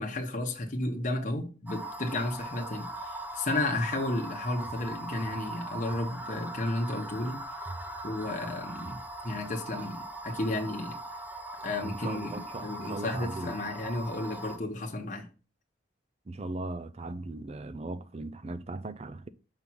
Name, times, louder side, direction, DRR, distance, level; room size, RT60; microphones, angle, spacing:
voice 1, 0.0-7.4 8.0-11.0 11.6-15.3, left 2 dB, 40° left, 1.0 m, -33 dB
sound 1, 1.7-14.6, right 1 dB, 10° right, 0.8 m, -40 dB
voice 2, 11.8-13.5 16.3-19.3, right 2 dB, 35° right, 0.4 m, -38 dB
5.7 x 5.3 x 4.6 m
head